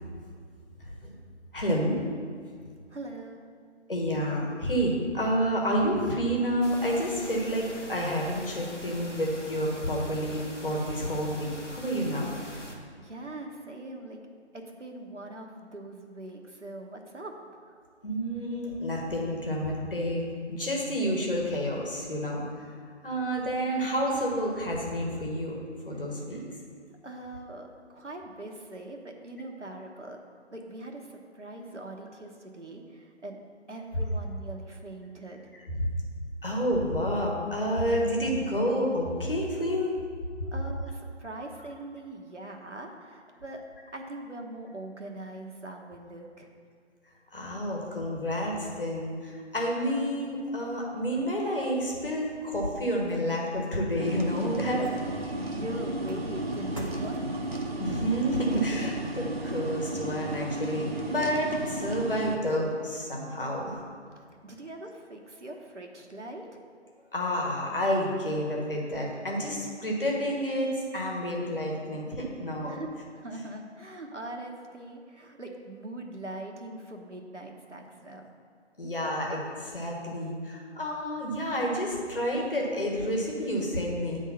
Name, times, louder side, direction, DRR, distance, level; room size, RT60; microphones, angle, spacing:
voice 1, 1.5-2.0 3.9-12.6 18.0-20.2 20.5-22.4 23.0-25.6 25.8-26.4 35.7-35.8 36.4-39.9 47.3-54.9 57.8-63.8 67.1-72.8 78.8-84.2, equal, 50° left, -2 dB, 1.5 m, -29 dB
voice 2, 2.9-3.4 13.0-14.2 14.5-17.3 27.0-30.2 30.5-33.4 33.7-35.5 40.5-43.6 43.9-46.5 55.3-57.3 64.2-66.6 72.7-72.9 73.1-78.3, right 1 dB, 80° right, 2 dB, 1.1 m, -42 dB
sound 1, 6.6-12.7, left 1 dB, 85° left, 1.3 m, -43 dB
sound 2, 54.0-60.3 60.7-60.8, equal, 30° left, 0.7 m, -48 dB
sound 3, 54.0-62.4, right 1 dB, 60° right, 0.9 m, -34 dB
8.9 x 3.7 x 5.7 m, 2.1 s
figure-of-eight pair, 160°, 35 cm